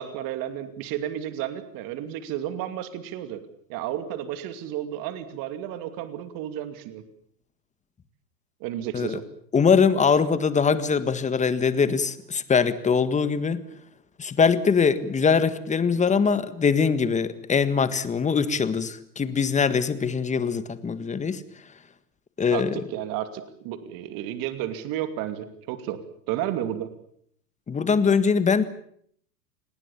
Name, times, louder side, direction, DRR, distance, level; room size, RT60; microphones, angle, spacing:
voice 1, 0.0-3.4 3.7-7.0 8.6-9.2 22.5-26.9, right 11 dB, 45° right, 10 dB, 2.6 m, -32 dB
voice 2, 9.5-13.6 14.2-21.4 22.4-22.8 27.7-28.6, left 5 dB, 15° left, 13 dB, 1.7 m, -22 dB
27.5 x 19.5 x 7.3 m, 0.65 s
hypercardioid pair, 125°, 49 cm